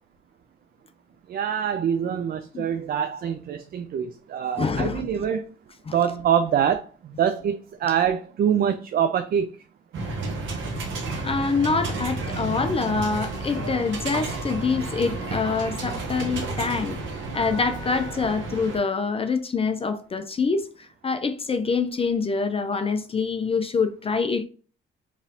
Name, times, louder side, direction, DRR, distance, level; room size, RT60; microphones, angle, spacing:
voice 1, 1.3-5.4 5.9-9.5, right 8 dB, 50° right, 0.4 m, -25 dB
voice 2, 4.6-5.1 5.9-6.0 11.2-17.0 17.3-24.4, left 4 dB, 30° left, 0.4 m, -25 dB
sound 1, 9.9-18.8, right 3 dB, 75° right, 0.9 m, -31 dB
3.9 x 3.1 x 2.7 m
cardioid pair, 90°, 20 cm